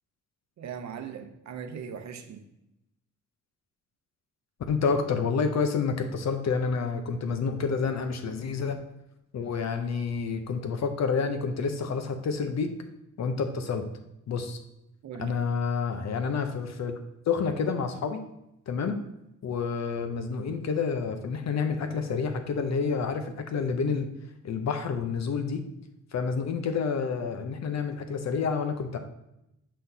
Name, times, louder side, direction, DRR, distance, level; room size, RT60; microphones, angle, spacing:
voice 1, 0.6-2.4 15.0-15.3, right 7 dB, 60° right, 7 dB, 0.7 m, -39 dB
voice 2, 4.7-8.8 9.3-12.7 13.2-13.9 14.3-14.6 15.2-16.9 17.3-18.2 18.7-19.0 19.4-24.1 24.4-25.6 26.1-29.0, left 5 dB, 60° left, 7 dB, 0.7 m, -29 dB
6.5 x 5.8 x 2.7 m, 0.85 s
wide cardioid pair, 165°, 31 cm